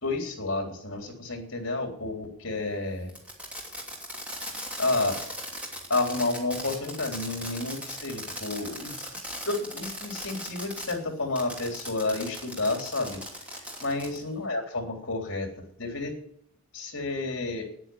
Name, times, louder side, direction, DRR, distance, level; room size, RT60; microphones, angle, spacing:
voice 1, 0.0-3.1 4.8-5.2 5.9-8.9 9.5-13.2 13.5-16.1 16.7-17.7, left 2 dB, 60° left, 3 dB, 3.6 m, -30 dB
Fireworks, 3.1-10.9 11.4-14.2, equal, 5° right, 2.9 m, -38 dB
9.8 x 9.8 x 9.4 m, 0.67 s
head